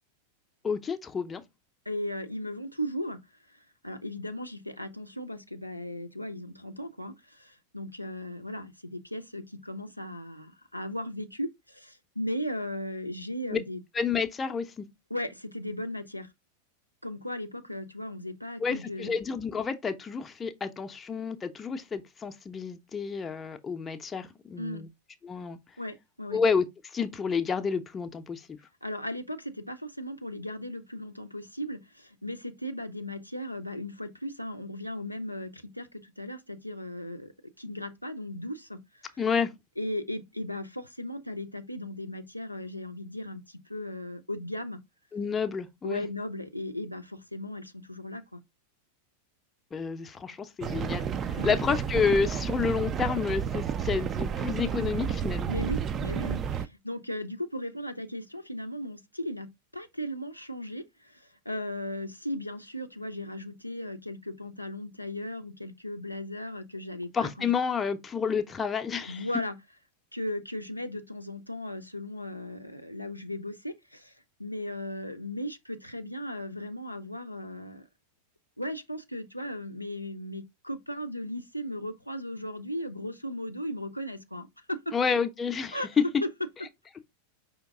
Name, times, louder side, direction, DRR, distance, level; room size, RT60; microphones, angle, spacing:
voice 1, 0.6-1.4 13.5-13.6 13.9-14.9 18.6-24.9 25.2-25.6 26.3-28.6 39.2-39.5 45.1-46.1 49.7-55.5 67.1-69.3 84.9-85.8, left 5 dB, 20° left, 0.6 m, -30 dB
voice 2, 1.9-3.2 3.5-3.6 3.8-13.8 15.1-16.3 17.0-19.2 24.6-24.8 25.8-26.4 28.8-37.3 37.6-39.0 39.8-44.8 45.8-48.4 51.4-51.6 55.5-67.5 69.0-69.5 70.1-74.1 74.4-77.9 78.6-84.9 85.7-85.9, left 1 dB, 90° left, 0.5 m, -37 dB
sound 1, 50.6-56.7, right 7 dB, 25° right, 0.3 m, -31 dB
5.2 x 2.9 x 3.6 m
figure-of-eight pair, 90°, 0 cm